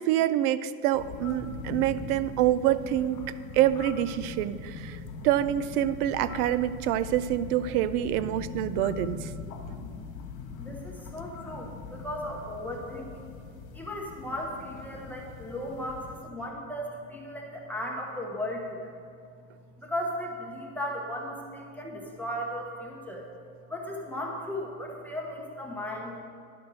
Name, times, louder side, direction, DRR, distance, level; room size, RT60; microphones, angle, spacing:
voice 1, 0.0-3.2 3.5-5.0 5.2-9.3, right 12 dB, 70° right, 15 dB, 0.5 m, -26 dB
sound 1, 0.9-16.2, left 5 dB, 75° left, 1.5 m, -41 dB
voice 2, 10.6-13.3 13.7-19.0 19.8-23.3 23.7-26.2, left 1 dB, 5° left, -2 dB, 0.8 m, -36 dB
11.0 x 4.4 x 6.1 m, 2.3 s
supercardioid pair, 145°, 45 cm